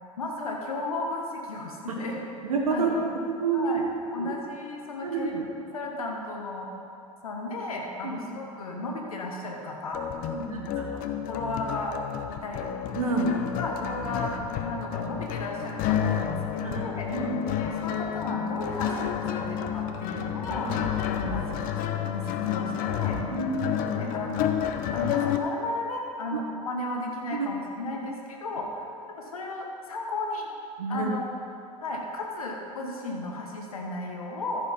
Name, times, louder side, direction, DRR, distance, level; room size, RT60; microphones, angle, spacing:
voice 1, 0.2-2.2 2.7-3.1 3.5-3.8 4.1-5.3 5.7-6.7 7.2-10.0 10.9-11.0 11.3-12.0 12.4-12.7 13.6-14.3 14.6-17.0 17.6-23.2 23.9-24.5 24.9-28.8 29.2-30.5 30.9-31.3 31.8-34.6, left 2 dB, 85° left, 0 dB, 1.2 m, -34 dB
voice 2, 2.4-3.0 3.3-3.8 4.2-4.3 5.0-5.5 8.0-8.2 10.3-10.9 12.9-13.3 16.6-17.5 20.1-20.2 20.5-20.7 23.1-23.6 24.0-24.1 27.3-27.5 27.9-28.0 30.8-31.1, right 4 dB, 85° right, -1 dB, 1.2 m, -29 dB
sound 1, 9.9-25.4, left 9 dB, 55° left, 0.7 m, -30 dB
14.5 x 5.0 x 5.3 m, 2.6 s
hypercardioid pair, 75°, 18 cm